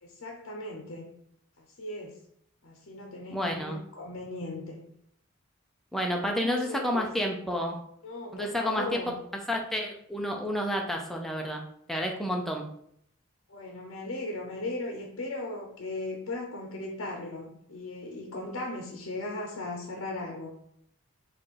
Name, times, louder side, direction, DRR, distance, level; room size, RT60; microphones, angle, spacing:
voice 1, 0.0-1.1 1.6-2.1 2.6-4.8 6.2-7.1 8.0-9.2 13.5-20.5, left 2 dB, 65° left, 0 dB, 0.7 m, -37 dB
voice 2, 3.3-3.8 5.9-7.8 8.3-8.9 9.3-11.6 11.9-12.7, equal, ahead, 0 dB, 0.5 m, -30 dB
4.3 x 2.5 x 4.6 m, 0.69 s
head